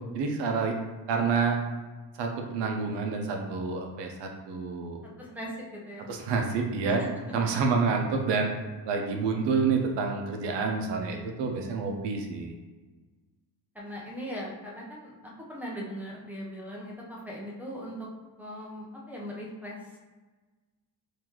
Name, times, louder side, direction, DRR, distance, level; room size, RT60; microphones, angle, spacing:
voice 1, 0.1-0.8 1.1-1.6 2.2-5.0 6.1-7.0 7.3-8.5 8.9-12.5, right 4 dB, 80° right, 2 dB, 0.7 m, -28 dB
voice 2, 5.0-6.1 7.0-7.1 13.7-18.1 18.4-19.8, equal, 5° right, -4 dB, 0.5 m, -39 dB
3.8 x 2.7 x 3.0 m, 1.3 s
cardioid pair, 160°, 42 cm